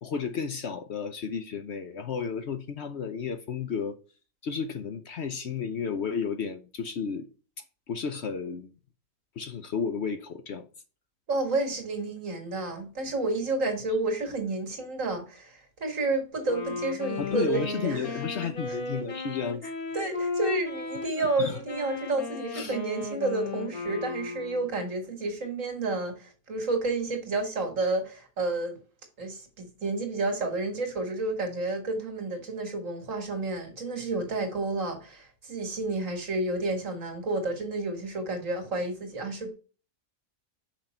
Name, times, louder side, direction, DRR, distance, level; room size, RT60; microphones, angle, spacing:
voice 1, 0.0-3.9 4.4-7.2 7.9-8.7 9.4-10.7 17.2-19.6 21.4-21.6 22.5-22.8, left 6 dB, 55° left, 0.9 m, -32 dB
voice 2, 11.3-18.2 18.7-18.8 19.9-28.8 29.2-39.5, right 2 dB, 60° right, 2.2 m, -30 dB
Wind instrument woodwind instrument, 16.4-24.8, left 3 dB, 90° left, 2.9 m, -35 dB
5.9 x 5.1 x 4.3 m
omnidirectional pair, 1.5 m